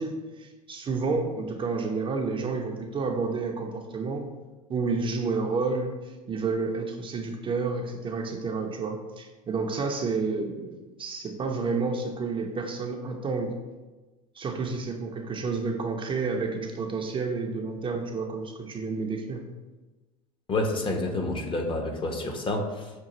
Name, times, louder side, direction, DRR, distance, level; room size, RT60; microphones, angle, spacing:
voice 1, 0.0-4.3 4.7-5.9 6.3-13.5 14.4-19.4, right 4 dB, 30° right, 3 dB, 0.5 m, -30 dB
voice 2, 20.5-22.9, left 2 dB, 30° left, 3 dB, 0.7 m, -29 dB
6.0 x 2.3 x 2.9 m, 1.2 s
hypercardioid pair, 80°, 18 cm